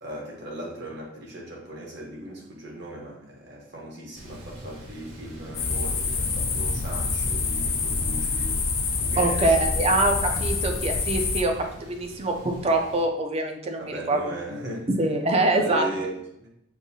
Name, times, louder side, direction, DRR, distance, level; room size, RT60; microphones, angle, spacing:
voice 1, 0.0-8.6 9.0-9.9 13.8-14.9 15.4-16.5, right 1 dB, 55° right, -2 dB, 1.1 m, -38 dB
Thunder, 4.1-13.0, equal, 75° right, 1.6 m, -40 dB
sound 1, 5.5-11.4, left 4 dB, 75° left, 0.7 m, -26 dB
voice 2, 9.2-14.2 14.5-14.6 15.0-15.9, right 2 dB, 30° right, 3 dB, 0.4 m, -24 dB
6.3 x 2.6 x 2.7 m, 0.81 s
head